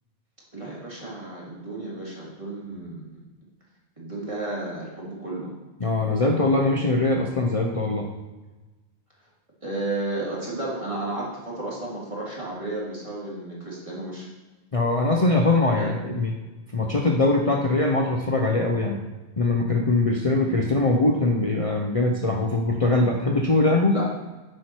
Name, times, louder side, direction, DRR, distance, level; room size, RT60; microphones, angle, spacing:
voice 1, 0.5-3.2 4.0-5.5 9.6-14.3 15.8-15.9 23.9-24.1, right 2 dB, 30° right, -6 dB, 2.8 m, -32 dB
voice 2, 5.8-8.1 14.7-16.3 16.7-19.0 19.4-23.9, left 2 dB, 35° left, 0 dB, 0.8 m, -22 dB
9.6 x 6.0 x 4.5 m, 1.2 s
omnidirectional pair, 1.1 m